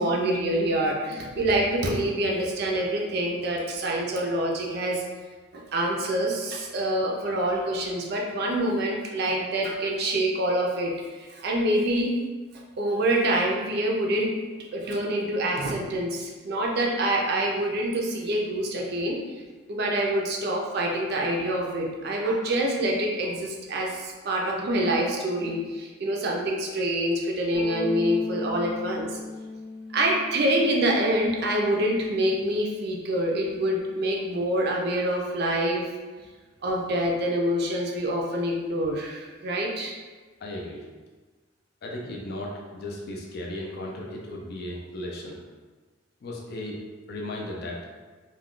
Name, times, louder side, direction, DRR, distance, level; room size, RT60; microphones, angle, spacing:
voice 1, 0.0-5.0 5.5-12.1 12.8-14.3 14.7-19.2 19.7-29.2 29.9-35.9 36.6-39.9, right 1 dB, 50° right, -1 dB, 0.4 m, -26 dB
Bass guitar, 27.5-33.8, left 2 dB, 10° left, 0.7 m, -38 dB
voice 2, 40.4-40.8 41.8-45.4 46.2-46.8 47.1-47.8, left 1 dB, 50° left, -1 dB, 0.4 m, -35 dB
2.3 x 2.2 x 3.6 m, 1.4 s
head